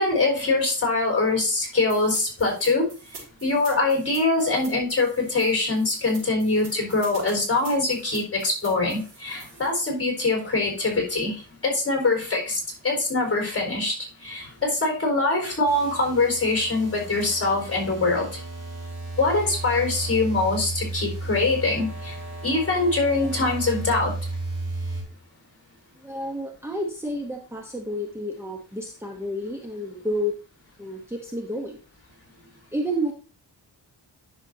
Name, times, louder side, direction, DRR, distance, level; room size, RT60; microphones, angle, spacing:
voice 1, 0.0-2.9 3.4-13.9 14.2-18.4 19.2-24.1, left 3 dB, 30° left, 0 dB, 4.5 m, -23 dB
sound 1, 1.9-9.9, right 4 dB, 65° right, 4.6 m, -46 dB
sound 2, 15.7-25.0, right 2 dB, 35° right, 4.0 m, -34 dB
voice 2, 26.0-30.4 30.8-31.8 32.7-33.1, equal, 5° right, 1 dB, 1.0 m, -30 dB
10.5 x 7.0 x 2.8 m, 0.38 s
wide cardioid pair, 100°, 43 cm